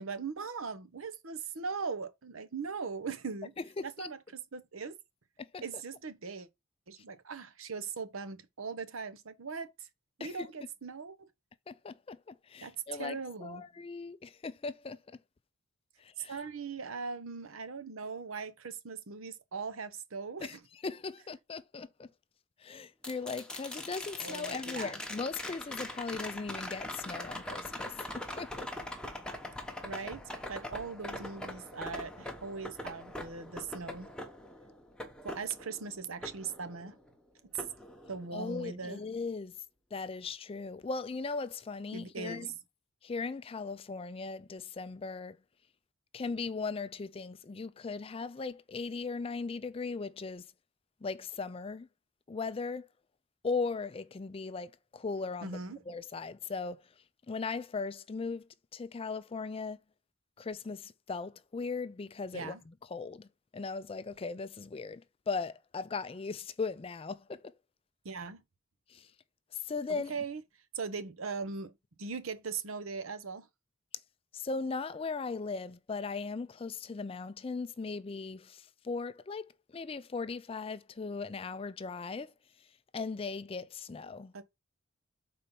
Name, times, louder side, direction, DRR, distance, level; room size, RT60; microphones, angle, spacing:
voice 1, 0.0-3.5 3.8-5.0 5.6-6.5 6.9-9.9 10.2-11.3 12.6-13.7 16.3-20.6 24.2-24.9 29.8-34.1 35.2-37.0 37.5-37.6 38.0-39.0 41.9-42.5 55.4-55.8 62.3-62.6 68.0-68.4 69.9-70.4 70.7-73.5 84.3-84.4, right 5 dB, 75° right, 0.9 m, -40 dB
voice 2, 3.8-4.1 5.4-5.6 10.2-10.5 11.7-15.0 16.0-16.4 20.4-20.6 20.8-22.1 22.6-28.7 38.3-39.6 39.9-42.5 43.0-45.4 46.1-50.5 51.0-51.9 52.3-52.9 53.4-55.6 55.9-56.9 57.3-59.8 60.4-63.3 63.5-67.5 68.9-69.1 69.5-70.1 74.3-82.3 82.6-82.7 82.9-84.3, left 4 dB, 25° left, 0.4 m, -38 dB
sound 1, 23.0-37.1 37.6-38.6 40.8-40.9, left 1 dB, 5° left, 1.0 m, -42 dB
5.5 x 4.3 x 5.2 m
head